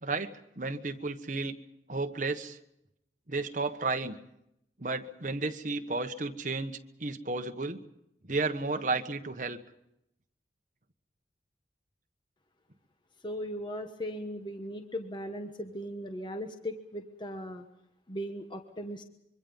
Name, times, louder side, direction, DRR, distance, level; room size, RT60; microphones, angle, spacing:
voice 1, 0.0-1.6 1.9-2.6 3.3-4.2 4.8-7.8 8.2-9.6, right 3 dB, 45° right, 7 dB, 1.3 m, -33 dB
voice 2, 13.2-17.6 18.1-19.0, equal, 25° left, 5 dB, 1.2 m, -38 dB
25.5 x 24.0 x 5.4 m, 0.83 s
head